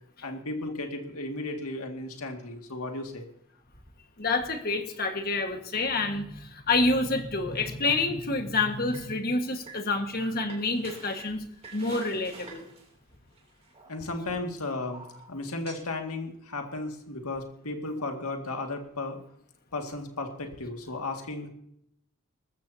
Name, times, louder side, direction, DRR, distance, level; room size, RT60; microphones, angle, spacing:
voice 1, 0.2-3.3 13.9-19.2 19.7-21.5, left 2 dB, 90° left, 3 dB, 2.1 m, -35 dB
voice 2, 4.2-11.4 11.7-12.6, left 3 dB, 45° left, 5 dB, 1.6 m, -28 dB
sound 1, 7.5-8.1 8.6-9.1 9.5-14.2 14.9-15.9, right 3 dB, 25° right, 2.9 m, -48 dB
19.5 x 14.5 x 2.8 m, 0.73 s
head